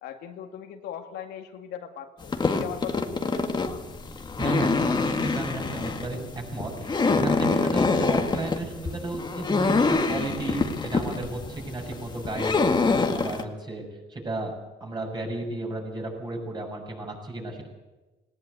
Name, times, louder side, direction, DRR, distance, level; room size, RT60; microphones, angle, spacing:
voice 1, 0.0-3.7, left 9 dB, 80° left, 4 dB, 2.3 m, -39 dB
sound 1, 2.2-13.4, left 4 dB, 25° left, 1.9 m, -26 dB
voice 2, 4.4-12.6 13.1-13.8 14.1-14.5 14.8-17.7, right 2 dB, 25° right, 2 dB, 6.6 m, -33 dB
19.0 x 18.5 x 8.2 m, 1.2 s
cardioid pair, 110°, 17 cm